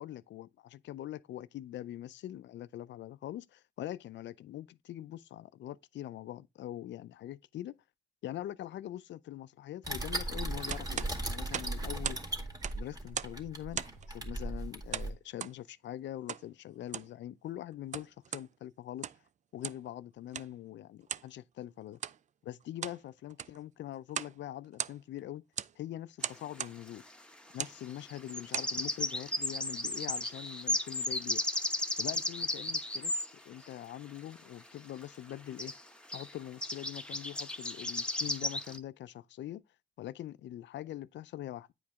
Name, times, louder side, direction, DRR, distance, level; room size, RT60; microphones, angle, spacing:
voice 1, 0.0-7.8 8.2-12.2 12.7-13.8 14.1-18.1 18.3-19.1 19.5-22.0 22.4-25.4 25.8-27.0 27.5-31.4 32.0-33.1 33.4-35.7 36.1-39.6 40.0-41.7, left 13 dB, 65° left, 0.5 m, -43 dB
sound 1, 9.8-15.1, right 1 dB, 20° right, 2.1 m, -37 dB
sound 2, 10.7-12.3 12.5-13.4 13.7-14.1 14.9-15.6 16.3-16.5 16.8-17.2 17.7-18.5 18.9-19.3 19.6-19.9 20.3-20.5 21.1-21.3 21.9-22.2 22.6-23.0 23.3-23.6 24.1-24.4 24.6-25.2 25.6-25.8 26.2-26.8 27.5-27.8 28.3-28.7, right 9 dB, 40° right, 0.4 m, -38 dB
sound 3, 26.2-26.3 28.1-33.3 35.0-35.1 35.3-35.4 35.6-35.8 36.1-36.3 36.6-38.8, left 1 dB, 5° left, 1.0 m, -34 dB
9.2 x 5.0 x 3.5 m
cardioid pair, 90°, 20 cm